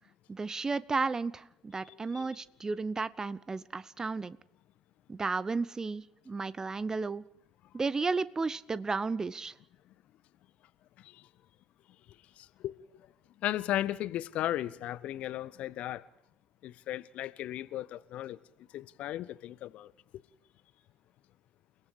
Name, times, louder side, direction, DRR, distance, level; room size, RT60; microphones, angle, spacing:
voice 1, 0.3-4.4 5.1-7.2 7.7-9.5, right 4 dB, 20° right, 0.8 m, -33 dB
voice 2, 1.9-2.3 11.0-11.3 12.4-12.8 13.4-16.0 16.6-18.4 18.7-20.2, left 13 dB, 50° left, 0.7 m, -36 dB
29.5 x 18.0 x 4.9 m
figure-of-eight pair, 55°, 3 cm